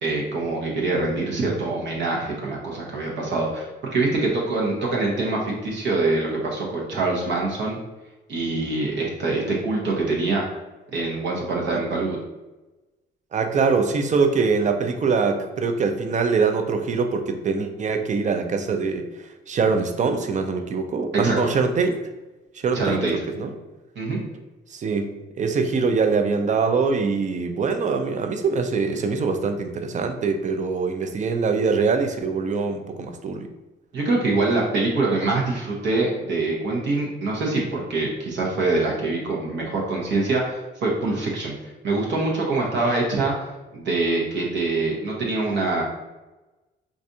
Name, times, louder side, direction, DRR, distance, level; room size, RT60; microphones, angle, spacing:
voice 1, 0.0-7.8 8.3-10.5 10.9-12.2 21.2-21.5 22.7-23.1 24.0-24.2 33.9-41.5 41.8-43.3 43.7-45.8, right 3 dB, 65° right, -2 dB, 0.9 m, -24 dB
voice 2, 13.3-19.1 19.5-21.9 22.6-23.5 24.7-33.5, right 4 dB, 40° right, 7 dB, 0.4 m, -23 dB
4.0 x 2.4 x 2.6 m, 1.1 s
cardioid pair, 90°, 20 cm